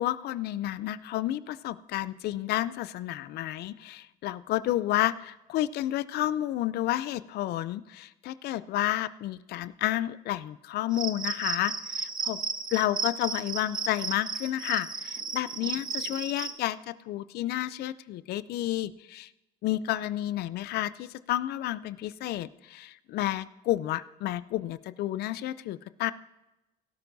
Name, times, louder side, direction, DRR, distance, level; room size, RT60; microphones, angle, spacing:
voice 1, 0.0-12.4 12.7-19.3 19.6-26.1, left 14 dB, 70° left, 16 dB, 0.5 m, -31 dB
Cricket, 10.9-16.5, right 5 dB, 25° right, 1.0 m, -34 dB
18.0 x 12.0 x 2.7 m, 0.97 s
cardioid pair, 110°, 17 cm